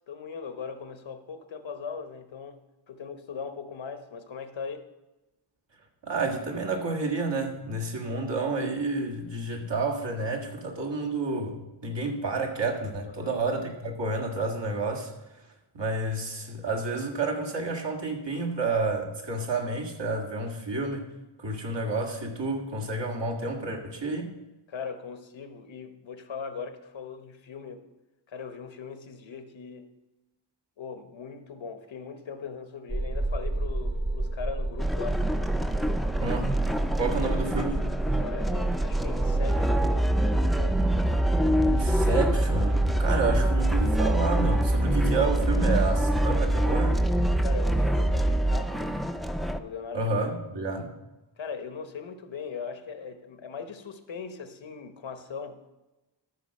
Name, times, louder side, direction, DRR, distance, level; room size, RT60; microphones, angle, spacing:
voice 1, 0.1-4.9 13.0-13.4 24.7-27.8 28.3-29.9 30.8-35.2 38.2-40.8 47.4-49.0 49.5-50.4 51.4-55.6, left 6 dB, 85° left, 8 dB, 1.0 m, -39 dB
voice 2, 6.0-15.1 15.7-21.1 21.4-24.3 36.2-36.5 37.0-37.9 41.6-47.0 49.9-50.9, right 3 dB, 70° right, 0 dB, 1.8 m, -30 dB
sound 1, 32.9-48.6, right 1 dB, 25° right, 1.1 m, -26 dB
sound 2, 34.8-49.6, equal, ahead, 0.4 m, -31 dB
13.5 x 4.9 x 6.4 m, 1.0 s
wide cardioid pair, 80°, 45 cm